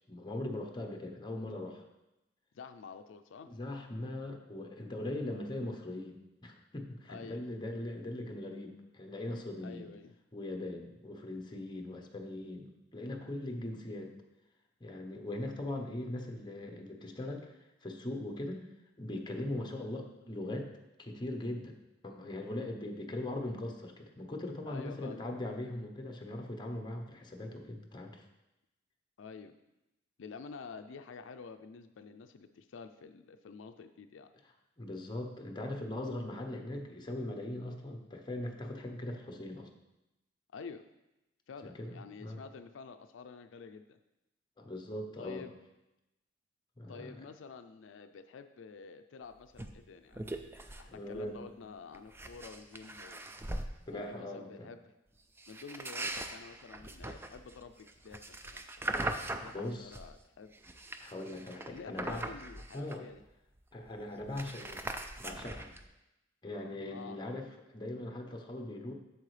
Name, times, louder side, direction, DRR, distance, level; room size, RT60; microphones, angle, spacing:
voice 1, 0.1-1.8 3.5-9.9 10.3-14.1 14.8-18.7 19.0-20.7 21.0-21.7 22.0-28.2 34.8-39.7 41.6-42.4 44.6-45.5 46.8-47.2 50.9-51.5 53.9-54.7 59.5-59.9 61.0-62.3 62.7-63.1 63.7-64.9 65.2-65.7 66.4-68.9, left 1 dB, 25° left, 3 dB, 0.9 m, -40 dB
voice 2, 2.5-3.5 7.1-7.4 9.6-10.1 24.7-25.2 29.2-29.5 30.2-34.3 40.5-40.9 41.5-44.0 45.2-45.5 46.9-50.2 50.8-53.3 53.9-54.8 55.5-60.5 61.7-63.2 66.9-67.2, left 5 dB, 85° left, 8 dB, 0.4 m, -49 dB
sound 1, 49.6-49.7 50.1-50.9 51.1-51.4 51.9-53.7 55.4-60.2 60.5-63.2 63.6-63.7 63.9-65.9, right 1 dB, 10° right, 0.4 m, -41 dB
8.4 x 7.0 x 3.3 m, 0.95 s
head